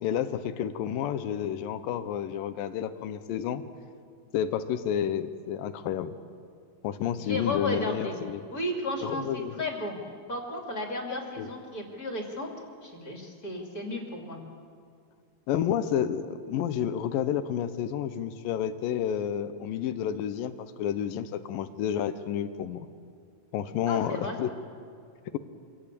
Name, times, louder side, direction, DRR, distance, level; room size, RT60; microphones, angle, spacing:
voice 1, 0.0-3.6 4.3-6.2 6.8-8.4 9.0-9.6 11.4-11.5 15.5-22.9 23.5-24.5, left 9 dB, 85° left, 11 dB, 2.6 m, -30 dB
voice 2, 7.2-8.2 8.5-10.0 10.3-12.5 12.8-14.4 23.9-24.4, left 1 dB, 30° left, 1 dB, 2.9 m, -33 dB
25.5 x 17.5 x 8.4 m, 2.3 s
omnidirectional pair, 3.9 m